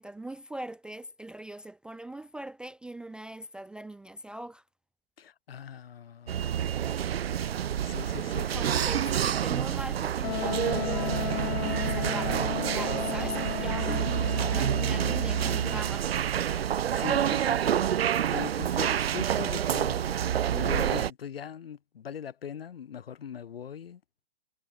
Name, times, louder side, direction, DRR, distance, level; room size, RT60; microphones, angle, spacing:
voice 1, 0.0-4.6 8.5-12.4 12.7-16.1, right 1 dB, 5° right, 0.5 m, -41 dB
voice 2, 5.2-6.7 7.8-8.9 13.9-14.0 16.9-17.6 18.3-24.0, left 8 dB, 75° left, 2.3 m, -40 dB
sound 1, 6.3-21.1, right 9 dB, 80° right, 0.7 m, -28 dB
Wind instrument woodwind instrument, 10.2-15.8, left 18 dB, 35° left, 0.7 m, -35 dB
hypercardioid pair, 135°, 30 cm